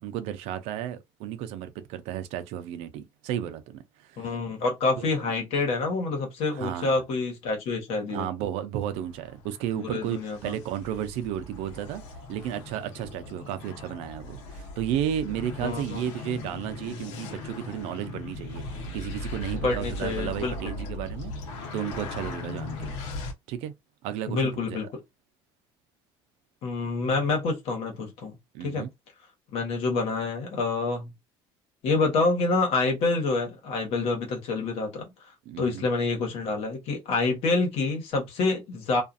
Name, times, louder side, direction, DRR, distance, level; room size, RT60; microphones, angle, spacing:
voice 1, 0.0-4.4 5.0-5.2 6.5-7.0 8.1-12.0 12.3-21.3 21.7-22.9 23.5-23.7 24.0-24.8 28.5-28.9 35.5-35.8, right 10 dB, 75° right, 0.5 m, -33 dB
voice 2, 4.2-8.3 9.7-10.6 15.6-16.0 19.5-20.5 24.3-24.9 26.6-28.4 28.6-28.9 29.5-31.1 31.8-35.1 35.6-39.0, left 3 dB, 60° left, 1.2 m, -27 dB
sound 1, 8.9-23.3, left 2 dB, 80° left, 0.9 m, -39 dB
sound 2, 16.1-20.2, equal, 15° left, 1.1 m, -46 dB
2.5 x 2.4 x 2.5 m
cardioid pair, 135°, 11 cm